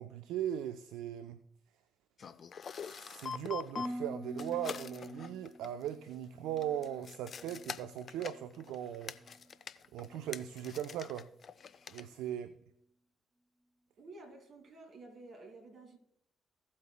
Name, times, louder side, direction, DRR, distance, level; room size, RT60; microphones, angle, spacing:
voice 1, 0.0-1.4 2.8-9.2 9.9-11.3 11.9-12.5, right 10 dB, 70° right, 0.4 m, -39 dB
sound 1, 2.2-4.0 4.3-5.9 6.6-12.0, left 6 dB, 50° left, 0.5 m, -45 dB
Harp, 3.8-7.9 8.2-8.7 9.2-9.5, equal, 5° right, 0.4 m, -46 dB
voice 2, 14.0-16.0, right 2 dB, 55° right, 2.3 m, -52 dB
16.0 x 8.4 x 2.2 m
hypercardioid pair, 40°, 0 cm